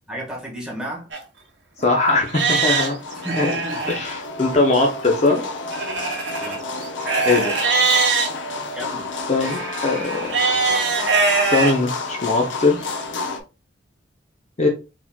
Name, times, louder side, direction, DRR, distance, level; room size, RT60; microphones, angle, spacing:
voice 1, 0.1-1.1 3.2-4.0 6.4-6.6 7.2-7.3 8.7-9.1 9.4-9.7, equal, 5° right, -3 dB, 1.5 m, -33 dB
Livestock farm animals working animals, 1.1-1.2 1.8-1.9 2.3-4.0 5.7-8.3 9.4-11.7 12.3-12.4 13.0-13.1, right 4 dB, 70° right, 1.4 m, -22 dB
voice 2, 1.8-3.0 3.4-3.5 3.9-5.4 7.2-7.6 9.3-10.4 11.5-12.8 14.6-14.7, left 3 dB, 35° left, 2 dB, 0.6 m, -20 dB
sound 1, 2.3-13.4, left 3 dB, 70° left, 0.7 m, -31 dB
4.2 x 4.2 x 2.3 m, 0.30 s
head